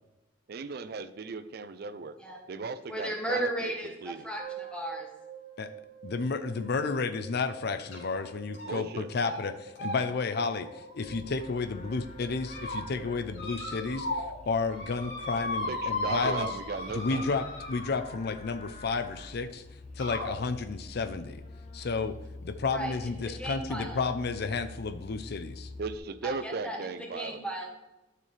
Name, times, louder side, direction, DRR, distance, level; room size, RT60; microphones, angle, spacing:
voice 1, 0.5-2.2 2.5-3.7 4.0-4.3 8.7-9.1 15.7-17.3 25.8-27.4, right 4 dB, 55° right, 12 dB, 0.4 m, -37 dB
voice 2, 2.9-5.1 22.7-22.9 23.4-24.0 26.2-26.9 27.1-27.7, right 1 dB, 5° left, -2 dB, 2.0 m, -35 dB
sound 1, 4.4-16.6, right 4 dB, 30° right, 1.7 m, -48 dB
voice 3, 6.0-16.6 16.9-19.6 20.0-21.4 21.7-22.2 22.4-25.7, left 4 dB, 60° left, 11 dB, 0.5 m, -32 dB
sound 2, 7.9-8.2 8.5-8.9 9.2-9.4 9.8-11.7 12.2-12.8 13.4-14.3 14.6-18.2 19.2-19.3 20.0-20.3, left 2 dB, 75° left, 3.5 m, -36 dB
Livestock farm animals working animals, 11.0-26.0, left 2 dB, 40° left, 0.9 m, -47 dB
12.0 x 6.8 x 3.3 m, 1.0 s
head